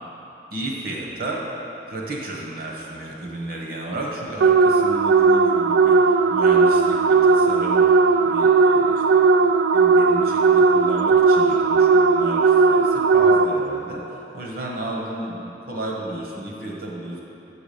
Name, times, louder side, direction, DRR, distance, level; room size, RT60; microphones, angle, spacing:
voice 1, 0.5-1.4 1.9-7.9 8.2-17.2, right 2 dB, 55° right, -2 dB, 1.3 m, -33 dB
sound 1, 4.4-13.8, right 4 dB, 80° right, 0.3 m, -17 dB
6.9 x 6.1 x 6.9 m, 2.9 s
head